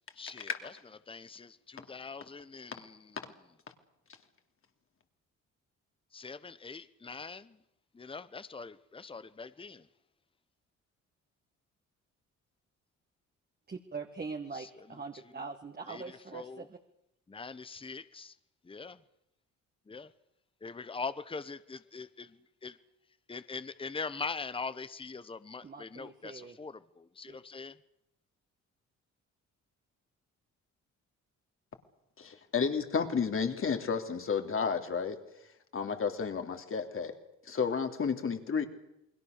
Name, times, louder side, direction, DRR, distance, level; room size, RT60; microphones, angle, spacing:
voice 1, 0.2-0.7 1.1-3.2 6.1-7.6 7.9-9.9 14.5-14.7 15.9-16.7 17.3-18.4 18.6-19.0 19.9-20.1 20.6-22.8 23.3-27.8, left 4 dB, 15° left, 1.0 m, -42 dB
voice 2, 13.7-16.8 25.6-26.6 27.3-27.4, right 4 dB, 30° right, 2.0 m, -42 dB
voice 3, 32.2-35.2 35.7-37.1 37.4-38.6, left 6 dB, 45° left, 3.0 m, -31 dB
29.0 x 21.0 x 6.6 m
cardioid pair, 90°, 30 cm